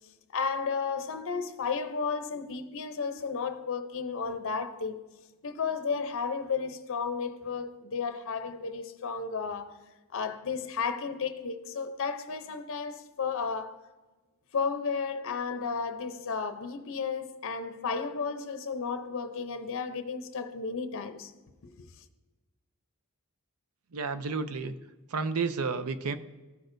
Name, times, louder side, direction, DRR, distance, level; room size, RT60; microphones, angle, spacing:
voice 1, 0.3-5.0 5.4-9.8 10.1-13.9 14.5-21.3 21.6-21.9, left 5 dB, 65° left, 0.6 m, -33 dB
voice 2, 23.9-24.7 25.1-26.2, right 4 dB, 70° right, 0.5 m, -31 dB
15.0 x 6.2 x 2.6 m
head